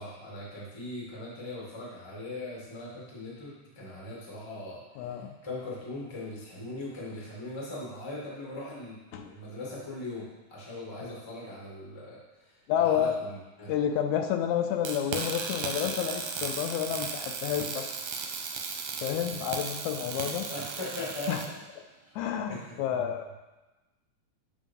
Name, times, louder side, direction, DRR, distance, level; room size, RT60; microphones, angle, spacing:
voice 1, 0.0-13.7 20.5-21.6 22.0-22.1 22.5-23.1, left 1 dB, 15° left, -5 dB, 0.9 m, -40 dB
voice 2, 5.0-5.3 9.1-9.3 11.0-11.1 12.7-13.1 13.7-17.9 19.0-20.5 21.3-21.4 22.2-23.3, left 9 dB, 80° left, 5 dB, 1.9 m, -30 dB
sound 1, 14.9-21.5, right 5 dB, 75° right, 1.8 m, -36 dB
7.4 x 3.7 x 5.3 m, 1.1 s
omnidirectional pair, 3.4 m